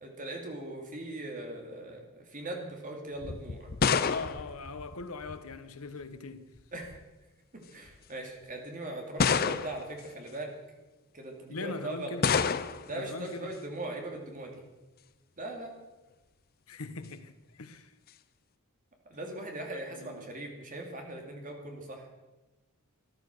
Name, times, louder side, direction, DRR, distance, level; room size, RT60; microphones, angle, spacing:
voice 1, 0.0-3.7 6.7-7.0 7.5-10.6 11.1-12.2 12.9-14.6 15.4-15.7 19.1-22.1, right 2 dB, 35° right, 2.6 m, -40 dB
sound 1, 3.2-5.6 6.6-7.0 7.9-8.0 9.2-10.0 12.2-13.0, left 6 dB, 45° left, 0.5 m, -29 dB
voice 2, 4.0-6.5 11.5-12.3 12.9-13.5 16.7-17.9 19.7-20.2, left 3 dB, 80° left, 1.1 m, -41 dB
13.5 x 11.5 x 6.6 m
head